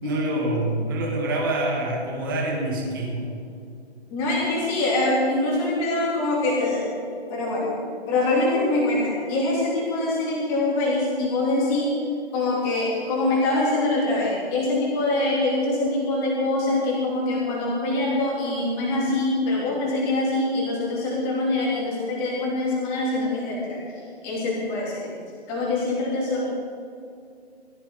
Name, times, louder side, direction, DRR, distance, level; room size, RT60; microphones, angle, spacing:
voice 1, 0.0-3.4, right 1 dB, 20° right, -1 dB, 2.0 m, -26 dB
voice 2, 4.1-6.9 7.3-7.7 8.1-12.0 12.3-23.8 24.2-25.1 25.5-26.5, left 2 dB, 10° left, -5 dB, 2.6 m, -24 dB
21.5 x 14.0 x 3.7 m, 2.4 s
hypercardioid pair, 175°, 33 cm